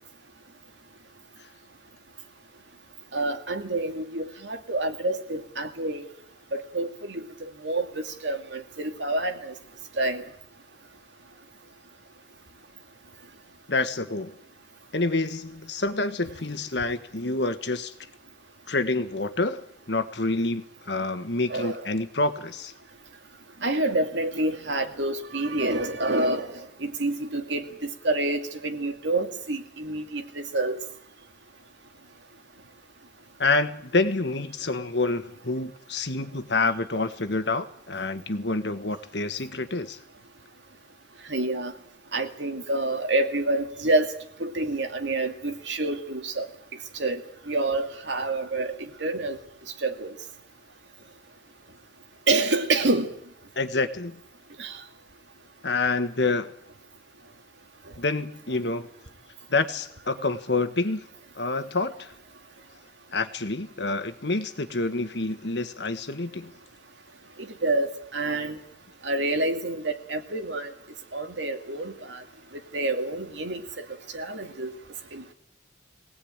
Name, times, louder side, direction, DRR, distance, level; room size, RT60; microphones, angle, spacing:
voice 1, 3.1-6.1 6.5-9.5 10.0-10.2 21.5-21.9 23.6-30.8 41.3-41.7 42.1-44.1 44.4-46.5 46.9-49.4 49.8-50.1 52.3-53.1 54.6-54.8 67.4-68.6 69.0-70.7 71.1-72.2 72.7-73.8 74.1-74.7 75.1-75.3, right 2 dB, 70° right, 6 dB, 2.3 m, -28 dB
voice 2, 13.7-14.3 14.9-17.9 18.7-22.7 33.4-40.0 53.5-54.2 55.6-56.5 58.0-58.9 59.5-61.0 61.3-62.1 63.1-66.5, left 3 dB, 65° left, 10 dB, 1.6 m, -27 dB
23.5 x 18.5 x 9.0 m, 0.74 s
head